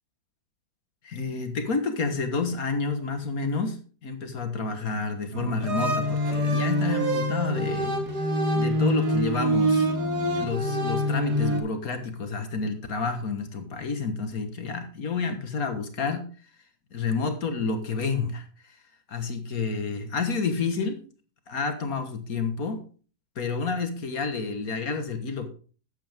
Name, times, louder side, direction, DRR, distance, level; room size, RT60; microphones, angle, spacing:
voice 1, 1.0-7.9 8.5-9.9 10.3-16.3 16.9-18.5 19.1-21.0 21.5-22.8 23.4-25.5, left 4 dB, 55° left, 7 dB, 1.9 m, -29 dB
sound 1, 5.3-11.6, equal, 65° right, 2.2 m, -25 dB
13.0 x 8.7 x 3.6 m, 0.39 s
omnidirectional pair, 1.9 m